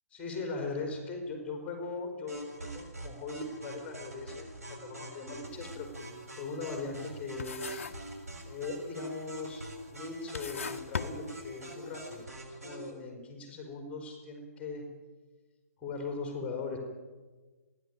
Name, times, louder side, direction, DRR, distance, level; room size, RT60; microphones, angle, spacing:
voice 1, 0.1-5.9 6.3-7.8 8.5-9.6 9.9-12.3 12.6-14.9 15.8-16.8, left 3 dB, 15° left, 3 dB, 4.1 m, -39 dB
sound 1, 2.3-12.9, right 1 dB, 70° right, 7.0 m, -44 dB
sound 2, 5.5-5.7 6.1-7.1 7.4-8.2 8.4-9.0 9.6-9.7 10.2-11.9, left 5 dB, 55° left, 1.0 m, -39 dB
30.0 x 11.5 x 9.1 m, 1.3 s
figure-of-eight pair, 130°, 8 cm